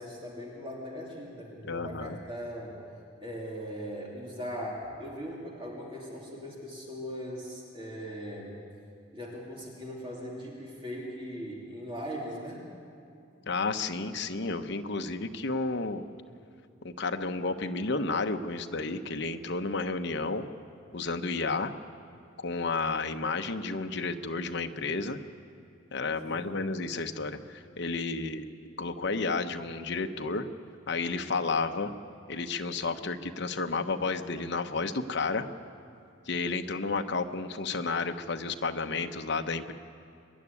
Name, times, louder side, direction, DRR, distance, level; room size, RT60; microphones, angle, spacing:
voice 1, 0.0-2.8 3.2-8.6 9.1-12.7 26.2-26.6, equal, 25° right, -3 dB, 2.8 m, -39 dB
voice 2, 1.6-2.2 13.5-16.0 16.8-20.5 20.9-21.7 22.4-25.2 25.9-28.4 28.8-30.5 30.9-31.9 32.3-35.5 36.3-39.7, left 3 dB, 60° left, 7 dB, 0.9 m, -31 dB
24.5 x 11.0 x 9.8 m, 2.5 s
head